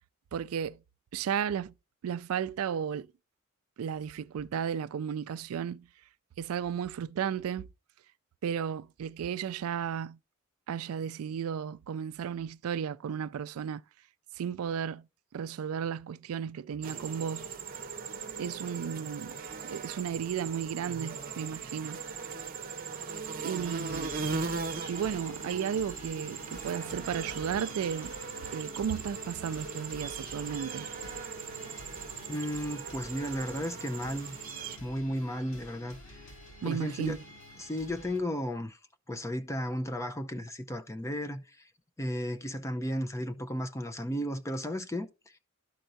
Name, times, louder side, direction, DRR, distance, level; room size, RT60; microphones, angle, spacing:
voice 1, 0.3-0.8 1.1-1.7 2.0-3.1 3.8-5.9 6.4-7.7 8.4-10.2 10.7-13.8 14.4-15.1 15.3-17.5 18.4-19.4 19.6-22.0 23.4-24.3 24.9-28.1 28.5-30.9 36.6-37.2, right 8 dB, 80° right, 0.3 m, -34 dB
sound 1, 16.8-34.8, right 5 dB, 45° right, 0.8 m, -39 dB
sound 2, 23.6-38.2, left 1 dB, 85° left, 3.8 m, -49 dB
voice 2, 32.3-34.4 34.8-36.3 36.6-37.2 37.6-38.8 39.1-41.4 42.0-45.1, equal, 15° left, 0.6 m, -34 dB
13.0 x 4.5 x 2.6 m
head